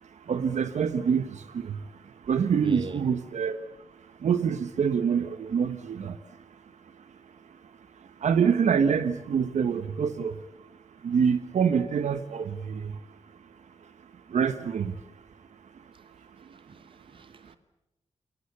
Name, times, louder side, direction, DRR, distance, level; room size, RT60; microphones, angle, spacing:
voice 1, 0.3-1.8 2.3-3.6 4.2-6.1 8.2-10.3 11.0-12.9 14.3-14.9, right 7 dB, 80° right, 1.2 m, -25 dB
voice 2, 2.6-3.0 16.7-17.6, right 3 dB, 45° right, 2.3 m, -41 dB
28.5 x 23.5 x 6.9 m
wide cardioid pair, 130°, 12 cm